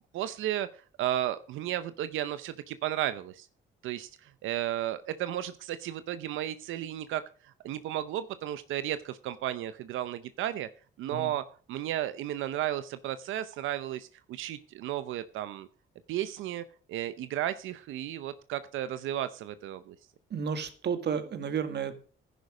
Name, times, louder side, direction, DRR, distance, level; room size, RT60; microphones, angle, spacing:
voice 1, 0.1-0.7 1.0-3.5 3.8-10.7 11.0-15.7 16.1-20.0, right 12 dB, 85° right, 13 dB, 0.7 m, -34 dB
voice 2, 20.3-21.9, right 7 dB, 60° right, 10 dB, 1.9 m, -32 dB
10.5 x 10.5 x 5.0 m, 0.40 s
cardioid pair, 90°, 20 cm